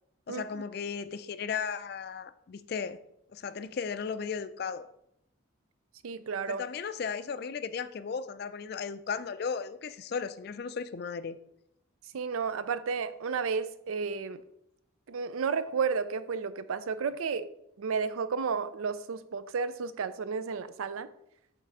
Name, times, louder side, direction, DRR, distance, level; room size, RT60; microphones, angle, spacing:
voice 1, 0.3-3.0 3.3-4.9 6.5-11.4, left 6 dB, 50° left, 0.3 m, -35 dB
voice 2, 6.0-6.6 12.1-14.4 15.1-17.5 17.8-21.1, right 5 dB, 90° right, 0.4 m, -32 dB
7.5 x 3.3 x 4.8 m
head